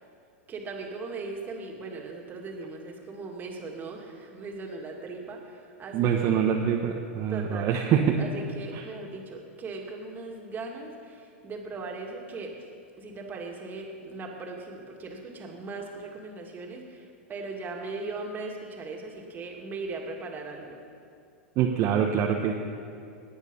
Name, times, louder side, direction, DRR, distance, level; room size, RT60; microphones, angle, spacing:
voice 1, 0.5-6.3 7.3-12.6 13.0-20.8, right 3 dB, 25° right, 1 dB, 2.5 m, -39 dB
voice 2, 5.9-8.2 8.7-8.8 21.6-22.5, right 8 dB, 45° right, 0 dB, 1.2 m, -25 dB
19.5 x 8.8 x 5.6 m, 2.4 s
hypercardioid pair, 110°, 7 cm